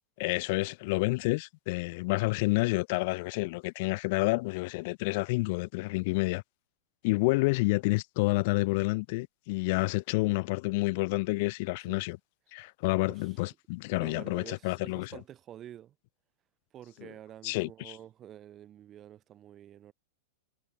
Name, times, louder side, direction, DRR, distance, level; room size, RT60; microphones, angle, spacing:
voice 1, 0.2-6.4 7.0-12.2 12.5-15.1 17.0-17.1 17.4-18.0, left 25 dB, 55° left, 0.4 m, -29 dB
voice 2, 13.1-13.4 14.0-15.9 16.7-19.9, right 11 dB, 30° right, 1.6 m, -49 dB
hypercardioid pair, 120°, 0 cm